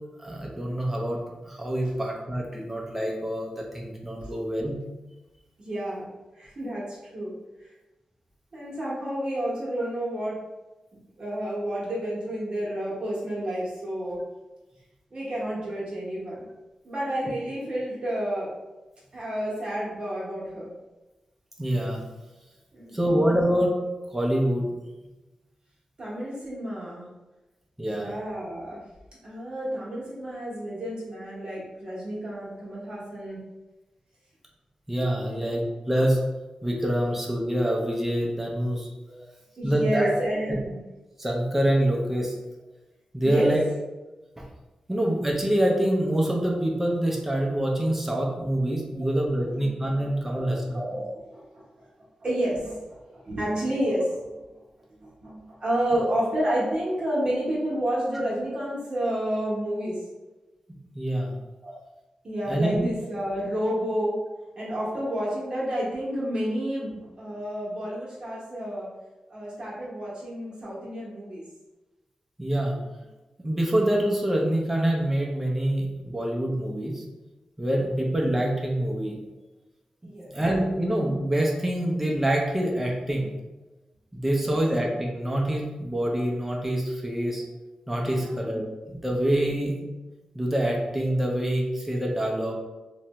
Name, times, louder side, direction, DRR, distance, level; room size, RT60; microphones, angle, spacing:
voice 1, 0.2-4.8 21.6-22.0 22.9-23.7 24.1-24.7 27.8-28.1 34.9-36.2 36.6-38.9 39.6-40.1 41.2-42.3 43.1-43.6 44.4-44.5 44.9-50.8 61.0-61.3 62.5-62.9 72.4-72.8 73.4-77.0 77.6-79.2 80.3-83.3 84.1-87.4 87.9-89.9 90.3-92.5, right 1 dB, 10° right, -1 dB, 0.5 m, -26 dB
voice 2, 5.6-6.1 6.4-7.3 8.5-10.4 11.2-14.2 15.1-16.4 16.8-18.5 19.1-20.7 22.7-23.1 26.0-27.1 27.8-28.8 29.2-33.4 35.3-35.5 39.1-39.2 39.6-40.8 43.2-43.5 48.9-49.1 49.5-49.7 50.3-51.1 51.3-51.6 52.2-54.2 55.0-60.0 61.6-61.8 62.2-64.2 64.6-68.9 69.3-71.4 80.0-80.3 84.4-84.6 88.2-88.3 89.4-89.5, right 1 dB, 45° right, -7 dB, 0.9 m, -30 dB
2.5 x 2.2 x 2.9 m, 1.1 s
wide cardioid pair, 120°, 2 cm